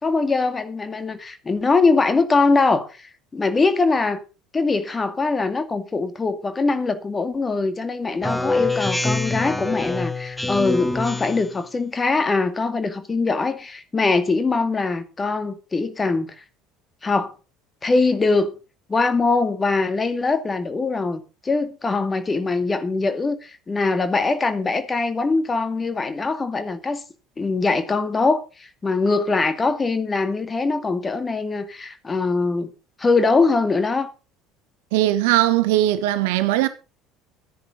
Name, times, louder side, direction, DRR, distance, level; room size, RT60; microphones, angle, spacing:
voice 1, 0.0-4.2 4.5-16.4 17.0-17.3 17.8-18.5 18.9-27.0 27.4-32.7 33.0-34.1, left 3 dB, 20° left, 2.2 m, -22 dB
Speech synthesizer, 8.2-11.6, left 2 dB, 5° left, 1.9 m, -25 dB
voice 2, 34.9-36.7, right 14 dB, 65° right, 1.2 m, -19 dB
13.0 x 10.5 x 5.1 m
figure-of-eight pair, 60°, 0 cm